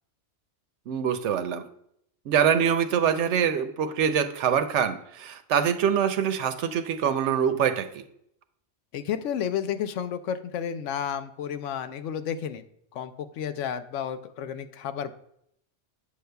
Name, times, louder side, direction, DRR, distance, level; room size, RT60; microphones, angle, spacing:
voice 1, 0.9-1.6 2.3-8.0, right 8 dB, 80° right, 9 dB, 0.9 m, -24 dB
voice 2, 8.9-12.6 12.9-15.1, left 8 dB, 85° left, 10 dB, 0.9 m, -31 dB
8.3 x 6.6 x 2.2 m, 0.72 s
omnidirectional pair, 1.2 m